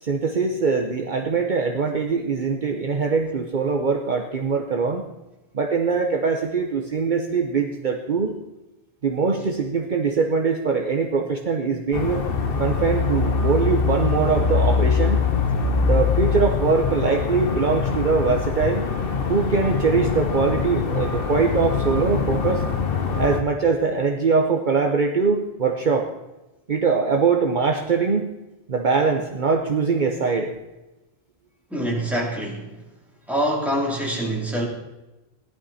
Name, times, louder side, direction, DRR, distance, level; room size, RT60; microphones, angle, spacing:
voice 1, 0.0-5.0 5.5-8.3 9.0-12.2 12.6-15.2 15.8-18.8 19.3-22.6 23.2-26.1 26.7-28.3 28.7-30.5, right 5 dB, 50° right, 3 dB, 1.0 m, -22 dB
sound 1, 11.9-23.4, left 5 dB, 65° left, 1.2 m, -23 dB
voice 2, 31.7-32.7 33.3-34.7, right 1 dB, ahead, -3 dB, 3.1 m, -25 dB
16.5 x 11.5 x 4.2 m, 1.0 s
omnidirectional pair, 1.0 m